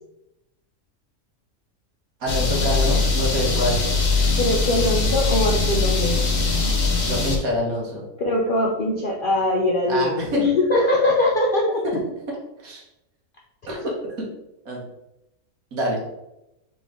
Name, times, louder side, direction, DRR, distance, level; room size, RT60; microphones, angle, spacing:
voice 1, 2.2-3.8 7.1-8.0 9.9-10.5 11.8-12.0 12.6-12.8 13.7-13.9 14.6-14.8 15.7-16.0, equal, 75° right, -2 dB, 1.6 m, -26 dB
sound 1, 2.3-7.4, left 3 dB, 45° left, 0.9 m, -21 dB
voice 2, 4.4-6.2 8.2-11.8, left 1 dB, 65° left, -1 dB, 0.5 m, -21 dB
4.2 x 3.3 x 3.5 m, 0.90 s
omnidirectional pair, 1.5 m